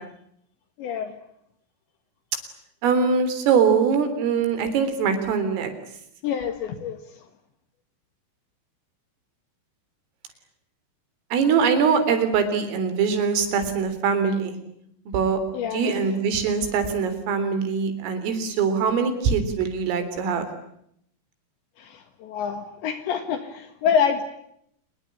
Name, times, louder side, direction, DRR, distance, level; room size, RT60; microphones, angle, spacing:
voice 1, 0.8-1.1 6.2-7.0 15.5-16.0 21.8-24.2, left 7 dB, 70° left, 9 dB, 3.8 m, -26 dB
voice 2, 2.8-5.7 11.3-14.6 15.1-20.5, right 6 dB, 80° right, 10 dB, 6.2 m, -22 dB
27.5 x 21.5 x 9.9 m, 0.73 s
omnidirectional pair, 5.8 m